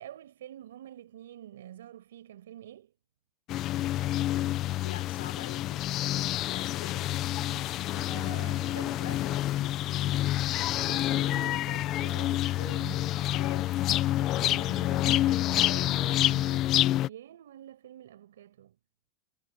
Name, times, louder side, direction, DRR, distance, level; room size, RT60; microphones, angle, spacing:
voice 1, 0.0-2.9 7.3-7.7 7.9-9.5 10.8-13.1 14.2-18.8, right 11 dB, 90° right, 6.9 m, -47 dB
sound 1, 3.5-17.1, left 14 dB, 40° left, 0.9 m, -28 dB
voice 2, 4.8-5.9 6.5-7.1 8.7-9.7 13.3-13.7, left 12 dB, 90° left, 5.0 m, -45 dB
supercardioid pair, 135°, 0 cm